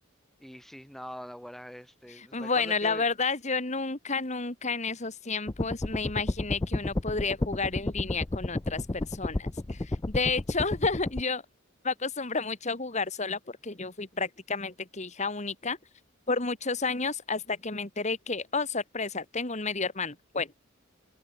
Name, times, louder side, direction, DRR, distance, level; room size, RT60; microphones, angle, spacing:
voice 1, 0.4-3.0, equal, ahead, 4.5 m, -43 dB
voice 2, 2.1-11.4 11.8-15.8 16.3-20.5, left 4 dB, 35° left, 2.1 m, -31 dB
sound 1, 5.5-11.2, left 2 dB, 20° left, 0.4 m, -31 dB
open air
head